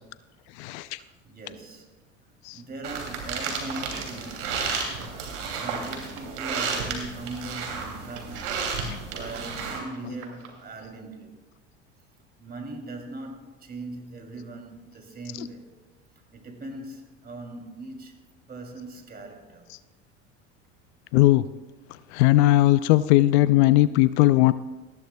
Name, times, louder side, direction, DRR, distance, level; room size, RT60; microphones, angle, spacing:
voice 1, 0.6-1.0 2.5-2.6 8.8-9.0 21.1-21.4 22.1-24.5, left 16 dB, 70° left, 0.6 m, -18 dB
voice 2, 1.2-1.9 2.5-4.9 5.4-8.6 9.1-11.5 12.4-15.7 16.3-19.7, right 2 dB, 25° right, 2.9 m, -40 dB
sound 1, 2.8-9.8, right 5 dB, 80° right, 2.8 m, -32 dB
sound 2, 3.6-6.6 7.3-10.6, right 5 dB, 45° right, 2.5 m, -46 dB
19.5 x 14.0 x 2.3 m
hypercardioid pair, 85°, 35 cm